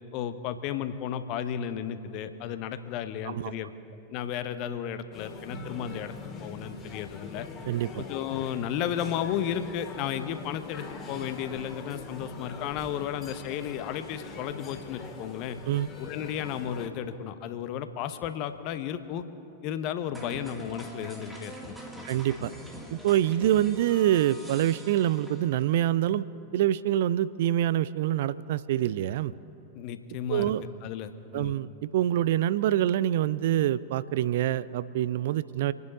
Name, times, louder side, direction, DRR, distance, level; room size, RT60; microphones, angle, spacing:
voice 1, 0.1-3.7 4.1-6.1 6.4-7.5 8.0-15.6 16.0-19.2 19.6-22.2 29.7-30.5 30.8-31.5, left 9 dB, 40° left, 11 dB, 0.8 m, -33 dB
sound 1, 5.1-16.9, left 4 dB, 25° left, 2.0 m, -42 dB
voice 2, 7.7-8.0 15.7-15.9 22.1-22.5 22.9-26.3 26.5-29.3 30.3-30.6 31.3-35.7, right 12 dB, 55° right, 18 dB, 0.4 m, -26 dB
sound 2, 20.1-25.8, right 1 dB, 5° right, 2.0 m, -44 dB
27.0 x 9.5 x 4.0 m, 2.7 s
figure-of-eight pair, 90°, 0 cm